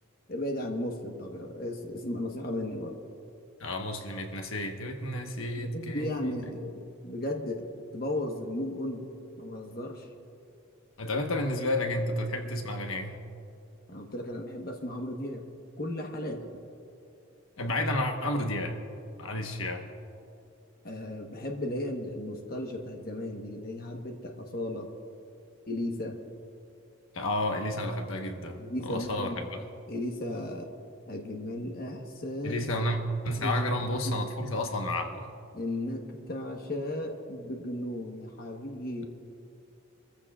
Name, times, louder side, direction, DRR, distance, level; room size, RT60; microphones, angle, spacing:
voice 1, 0.3-3.0 5.6-9.1 9.4-10.1 13.9-15.5 15.8-16.6 20.8-24.9 25.7-26.2 28.6-29.4 29.9-30.7 31.1-32.6 33.4-33.6 34.0-34.3 35.5-39.1, left 1 dB, 45° left, 2 dB, 1.2 m, -35 dB
voice 2, 3.6-6.4 11.0-13.3 17.6-18.8 19.2-19.8 27.1-29.6 32.4-33.0 33.2-35.3, left 1 dB, 80° left, 3 dB, 1.2 m, -31 dB
25.5 x 14.5 x 2.4 m, 2.5 s
head